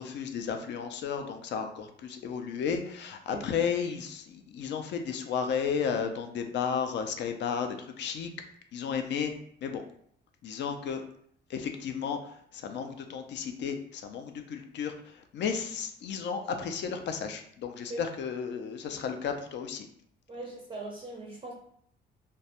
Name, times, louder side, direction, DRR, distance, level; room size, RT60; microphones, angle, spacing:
voice 1, 0.0-8.3 8.7-9.3 9.6-9.8 10.4-11.0 11.5-19.9, left 6 dB, 65° left, 6 dB, 0.4 m, -33 dB
voice 2, 20.3-21.5, right 2 dB, 25° right, -2 dB, 0.4 m, -40 dB
2.2 x 2.1 x 2.8 m, 0.65 s
cardioid pair, 90°, 20 cm